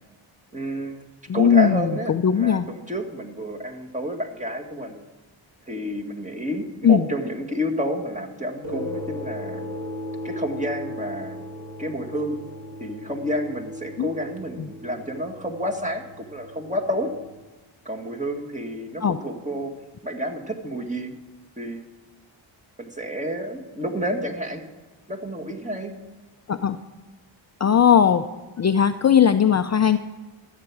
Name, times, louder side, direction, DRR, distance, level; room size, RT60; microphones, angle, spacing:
voice 1, 0.5-1.0 1.3-5.0 5.7-9.7 10.2-11.4 11.8-12.4 12.8-17.1 17.9-19.7 20.0-21.1 21.6-21.8 22.8-24.7 25.1-25.9, equal, 15° right, 2 dB, 1.9 m, -30 dB
voice 2, 1.3-2.7 6.8-7.1 14.0-14.1 14.6-14.7 19.0-19.2 26.5-26.8 27.6-28.2 28.6-30.0, left 8 dB, 35° left, 8 dB, 0.6 m, -18 dB
sound 1, 8.6-17.4, left 1 dB, 40° right, 5.4 m, -37 dB
13.5 x 8.4 x 6.2 m, 1.2 s
cardioid pair, 75°, 49 cm